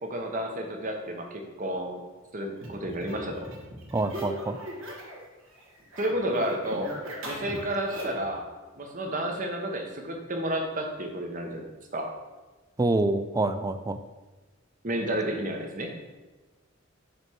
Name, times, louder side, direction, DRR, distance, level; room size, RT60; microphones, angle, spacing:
voice 1, 0.0-2.0 2.3-3.4 6.0-6.9 7.2-8.5 8.8-11.7 11.9-12.1 14.8-15.9, right 1 dB, 40° right, 3 dB, 1.0 m, -31 dB
sound 1, 2.6-5.3 5.5-8.3, equal, 75° right, 1.6 m, -39 dB
voice 2, 3.9-4.6 12.8-14.0, right 2 dB, 15° right, 10 dB, 0.3 m, -26 dB
5.2 x 4.3 x 6.1 m, 1.2 s
head